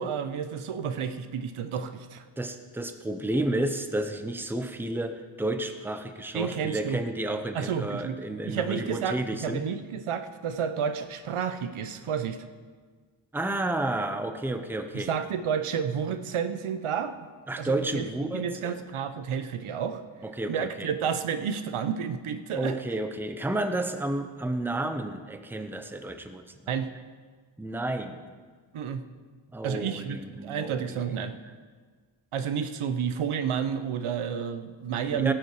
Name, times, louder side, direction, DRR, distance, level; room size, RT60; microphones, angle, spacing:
voice 1, 0.0-2.2 6.3-7.0 7.5-8.2 8.4-12.4 14.9-17.2 17.6-18.1 18.3-20.0 20.5-22.7 26.7-26.9 28.7-29.0 29.6-31.4 32.3-35.3, right 7 dB, 90° right, 10 dB, 0.9 m, -31 dB
voice 2, 2.4-9.6 13.3-15.2 17.5-18.7 20.2-20.9 22.5-26.7 27.6-28.2 29.5-31.1 35.2-35.3, right 1 dB, 5° right, 7 dB, 0.6 m, -31 dB
16.5 x 7.8 x 4.8 m, 1.5 s
wide cardioid pair, 140°, 48 cm